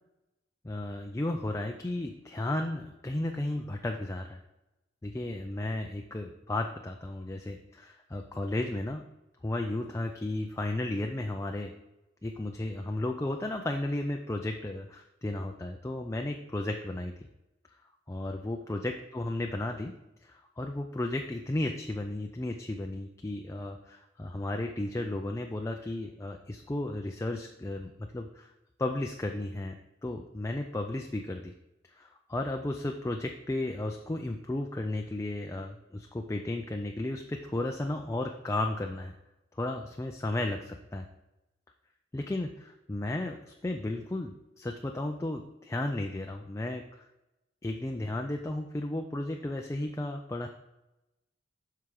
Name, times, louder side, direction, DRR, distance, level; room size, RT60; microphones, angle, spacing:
voice 1, 0.6-4.4 5.0-9.0 9.4-11.7 12.2-17.1 18.1-19.9 20.2-28.5 28.8-29.8 30.0-31.5 31.9-39.1 39.5-41.1 42.1-47.0 47.6-50.5, left 1 dB, 15° left, 3 dB, 0.4 m, -34 dB
7.8 x 5.7 x 3.8 m, 0.96 s
head